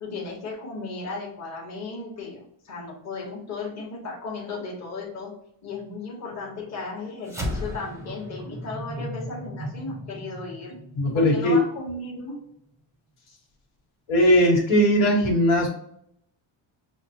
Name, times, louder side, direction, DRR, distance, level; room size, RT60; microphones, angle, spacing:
voice 1, 0.0-5.3 5.6-10.8 11.1-12.4, left 3 dB, 35° left, -3 dB, 1.1 m, -35 dB
sound 1, 7.3-11.9, equal, 5° right, 0.6 m, -35 dB
voice 2, 11.0-11.6 14.1-15.7, equal, 85° left, -1 dB, 1.4 m, -19 dB
5.6 x 2.1 x 2.8 m, 0.71 s
cardioid pair, 155°, 47 cm